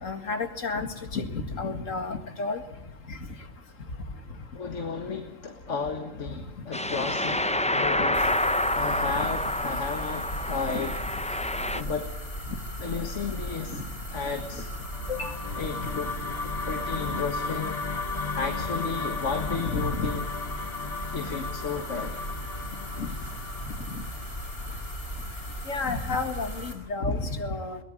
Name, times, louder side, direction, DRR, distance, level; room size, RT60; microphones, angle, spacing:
voice 1, 0.0-2.6 3.1-3.2 9.1-9.3 10.7-10.9 13.7-13.8 15.1-15.3 19.3-20.1 23.0-23.1 23.9-24.0 25.7-27.8, left 3 dB, 90° left, 8 dB, 2.4 m, -31 dB
voice 2, 4.6-7.4 7.7-8.3 8.7-10.9 11.2-11.5 11.7-12.1 12.8-13.8 14.1-14.7 15.6-16.1 16.7-17.8 18.1-20.3 21.0-22.2, left 5 dB, 70° left, 6 dB, 1.9 m, -33 dB
sound 1, 6.7-11.8, left 1 dB, 5° left, 0.6 m, -28 dB
sound 2, 8.1-26.7, equal, 50° left, 4.5 m, -37 dB
sound 3, 14.6-24.9, left 4 dB, 35° left, 1.0 m, -35 dB
22.0 x 18.5 x 8.7 m, 0.84 s
omnidirectional pair, 1.3 m